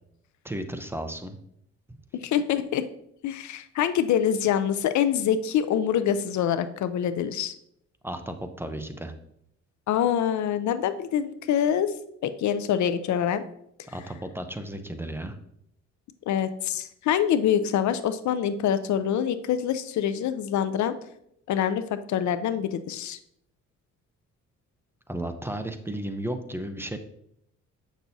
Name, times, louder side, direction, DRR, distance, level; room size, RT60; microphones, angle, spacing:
voice 1, 0.4-1.4 8.0-9.1 13.9-15.4 25.1-27.0, right 1 dB, 10° right, 7 dB, 0.7 m, -34 dB
voice 2, 2.1-2.8 3.2-7.5 9.9-11.9 12.2-13.4 16.3-20.9 21.5-21.8 22.1-23.2, left 9 dB, 70° left, 12 dB, 0.6 m, -25 dB
8.3 x 6.1 x 2.7 m, 0.74 s
cardioid pair, 90°, 30 cm